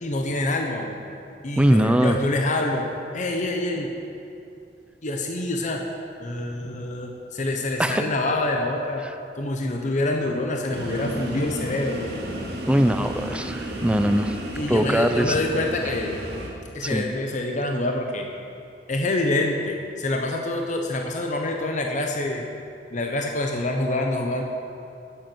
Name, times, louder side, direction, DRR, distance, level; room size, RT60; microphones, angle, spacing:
voice 1, 0.0-1.1 1.4-2.8 3.1-3.9 5.0-5.8 6.2-9.0 9.3-12.1 14.5-16.2 16.7-18.3 18.9-22.5 22.9-24.4, left 2 dB, 45° left, 2 dB, 0.9 m, -26 dB
voice 2, 1.6-2.2 7.8-8.0 9.0-9.1 12.7-14.4 14.7-15.4 16.8-17.0, right 1 dB, 5° right, 8 dB, 0.5 m, -21 dB
sound 1, 10.7-16.5, right 1 dB, 70° right, 2.3 m, -33 dB
11.0 x 7.8 x 7.8 m, 2.7 s
head